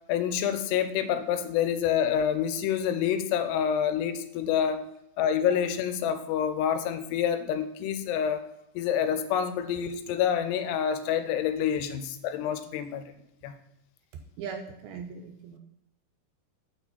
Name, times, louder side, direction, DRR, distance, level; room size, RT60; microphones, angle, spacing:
voice 1, 0.1-4.9 5.2-8.4 8.8-13.1 13.4-13.6, left 9 dB, 90° left, 10 dB, 2.8 m, -27 dB
voice 2, 14.4-15.6, right 6 dB, 80° right, 4 dB, 2.2 m, -39 dB
6.6 x 6.0 x 4.1 m, 0.83 s
omnidirectional pair, 4.7 m